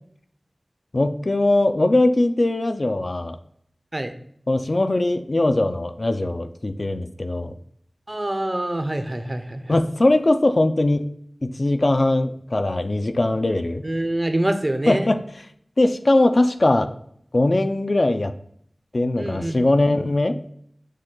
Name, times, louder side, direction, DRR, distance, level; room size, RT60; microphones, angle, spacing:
voice 1, 0.9-3.4 4.5-7.5 9.7-11.1 11.4-13.8 14.9-15.2 15.8-16.9 17.3-18.3 18.9-20.4, left 2 dB, 55° left, 8 dB, 0.3 m, -20 dB
voice 2, 8.1-9.8 13.8-15.1 19.2-19.7, right 1 dB, 35° right, 8 dB, 0.5 m, -26 dB
6.3 x 2.2 x 3.7 m, 0.66 s
wide cardioid pair, 50°, 0 cm